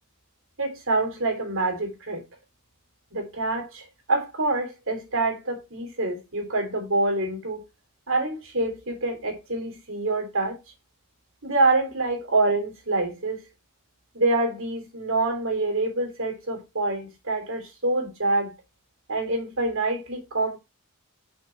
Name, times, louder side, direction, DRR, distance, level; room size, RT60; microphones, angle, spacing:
voice 1, 0.6-2.2 3.1-7.6 8.1-10.6 11.4-13.4 14.1-18.5 19.1-20.6, right 2 dB, 60° right, 3.3 m, -26 dB
6.7 x 5.9 x 4.5 m
head